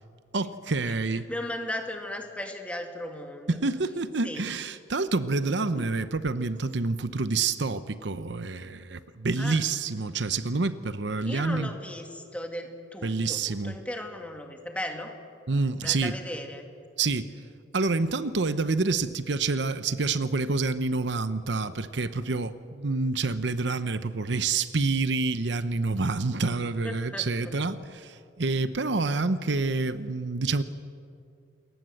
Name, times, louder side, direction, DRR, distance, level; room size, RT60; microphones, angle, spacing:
voice 1, 0.3-1.3 3.5-11.7 13.0-13.8 15.5-16.1 17.0-17.3 17.7-30.6, right 3 dB, 70° right, 12 dB, 0.8 m, -28 dB
voice 2, 0.9-3.6 4.2-4.5 5.7-5.9 9.4-9.6 11.2-15.1 15.8-16.7 26.8-27.5, left 1 dB, 5° left, 3 dB, 2.3 m, -37 dB
27.5 x 22.0 x 7.8 m, 2.4 s
head